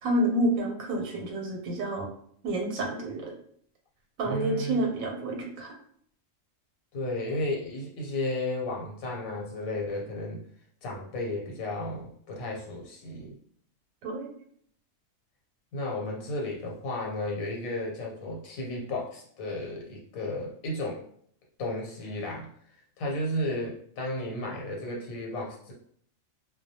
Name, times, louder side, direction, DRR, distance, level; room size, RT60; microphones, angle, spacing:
voice 1, 0.0-2.1 2.4-3.3 4.2-5.7 14.0-14.3, right 1 dB, 85° right, 1 dB, 1.0 m, -29 dB
voice 2, 4.2-4.8 6.9-10.4 10.8-13.3 15.7-21.0 21.6-22.5 23.0-25.7, left 1 dB, 85° left, -2 dB, 1.2 m, -33 dB
2.2 x 2.1 x 2.7 m, 0.63 s
omnidirectional pair, 1.4 m